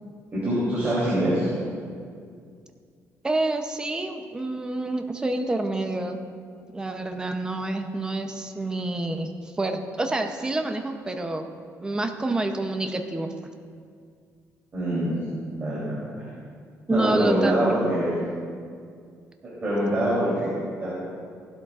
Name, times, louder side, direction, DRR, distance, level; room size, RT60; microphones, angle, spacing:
voice 1, 0.3-1.5 14.7-15.1 15.6-15.8 16.9-18.1 19.4-20.5 20.8-20.9, right 1 dB, 30° right, -9 dB, 3.1 m, -24 dB
voice 2, 3.2-6.2 6.7-9.3 9.6-11.5 11.8-13.3 16.9-17.9, right 2 dB, 15° right, 5 dB, 0.7 m, -28 dB
16.5 x 12.0 x 2.4 m, 2.2 s
cardioid pair, 170°, 6 cm